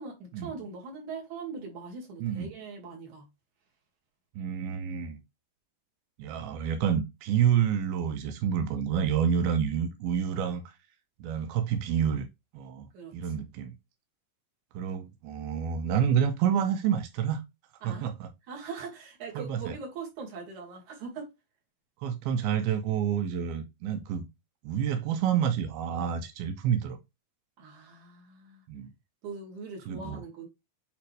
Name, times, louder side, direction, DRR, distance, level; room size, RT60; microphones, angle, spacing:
voice 1, 0.0-3.3 12.9-13.3 17.8-18.1 18.5-21.3 27.6-28.6 29.2-30.5, right 4 dB, 60° right, 3.2 m, -41 dB
voice 2, 4.4-5.2 6.2-10.8 11.2-12.3 12.5-12.9 13.1-13.7 14.7-17.4 17.8-18.3 19.4-19.8 22.0-24.3 24.6-27.0 28.7-28.9 29.9-30.2, right 8 dB, 85° right, 2.7 m, -28 dB
8.8 x 3.5 x 3.2 m
omnidirectional pair, 4.2 m